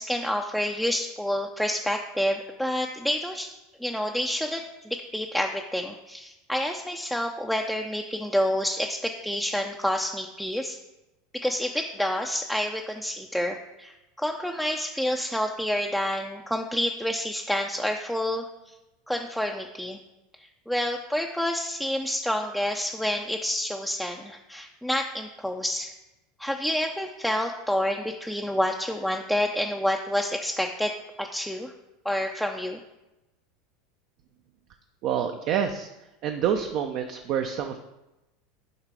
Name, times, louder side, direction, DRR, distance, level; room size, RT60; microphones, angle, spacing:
voice 1, 0.0-3.5 3.8-10.8 11.4-18.7 19.1-20.0 20.7-25.9 26.4-31.7 32.0-32.8, equal, ahead, 2 dB, 0.4 m, -28 dB
voice 2, 35.0-35.9 36.2-37.8, right 8 dB, 55° right, 6 dB, 0.4 m, -27 dB
6.6 x 3.2 x 4.8 m, 0.99 s
hypercardioid pair, 85°, 0 cm